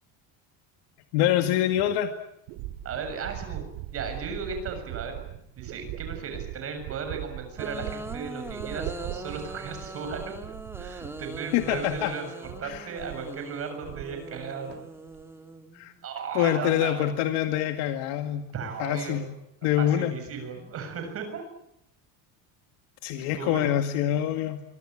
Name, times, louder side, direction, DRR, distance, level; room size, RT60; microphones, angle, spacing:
voice 1, 1.1-2.1 11.5-12.1 12.6-12.9 15.7-15.9 16.3-18.5 18.8-19.3 19.6-20.2 23.0-24.6, left 11 dB, 80° left, 7 dB, 2.2 m, -25 dB
sound 1, 1.7-1.8 2.5-12.2 12.4-13.3 13.6-14.4 14.7-15.2, right 14 dB, 85° right, 2.9 m, -40 dB
voice 2, 2.8-3.6 3.9-5.2 5.6-10.3 10.8-14.8 16.0-17.1 18.5-19.2 19.8-21.4 23.3-23.8, right 5 dB, 35° right, 6 dB, 7.3 m, -36 dB
Open and close dry, 7.6-16.1, right 2 dB, 5° right, 1.8 m, -41 dB
25.5 x 24.0 x 8.9 m, 0.77 s
cardioid pair, 170°, 40 cm